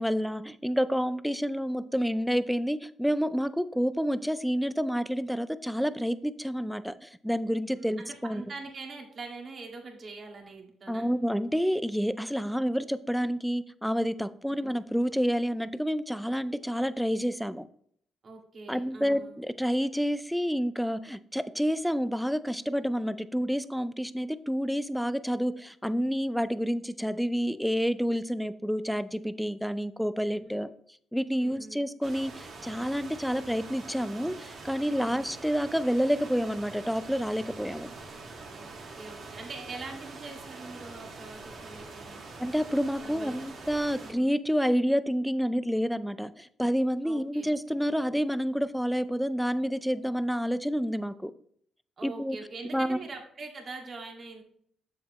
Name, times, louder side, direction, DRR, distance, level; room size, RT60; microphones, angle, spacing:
voice 1, 0.0-8.4 10.9-17.7 18.7-30.7 31.1-37.9 42.4-51.3 52.0-52.4 52.7-53.0, equal, ahead, 14 dB, 0.4 m, -29 dB
voice 2, 7.8-11.1 14.6-14.7 18.2-19.5 30.3-30.6 31.4-31.8 35.0-35.2 38.5-38.7 39.0-42.2 43.0-43.5 44.0-44.3 47.0-47.5 52.0-54.4, right 3 dB, 45° right, 1 dB, 2.0 m, -43 dB
sound 1, 32.0-44.1, right 3 dB, 60° right, 2.0 m, -44 dB
7.3 x 7.0 x 3.1 m, 0.64 s
cardioid pair, 90°, 0 cm